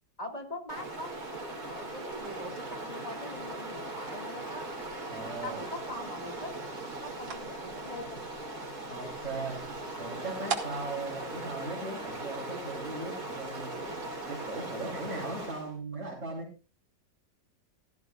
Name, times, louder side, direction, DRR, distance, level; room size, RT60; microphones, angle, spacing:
voice 1, 0.2-1.2 1.6-4.7 5.4-6.5 7.0-8.2, left 1 dB, 20° left, 3 dB, 2.0 m, -42 dB
Stream, 0.7-15.7, right 2 dB, 55° right, 3.9 m, -39 dB
sound 1, 2.0-12.4, right 5 dB, 80° right, 2.5 m, -45 dB
voice 2, 5.1-5.6 8.9-9.7 10.0-13.8 14.3-16.7, right 3 dB, 35° right, -6 dB, 4.5 m, -38 dB
16.0 x 14.0 x 2.4 m, 0.32 s
omnidirectional pair, 2.0 m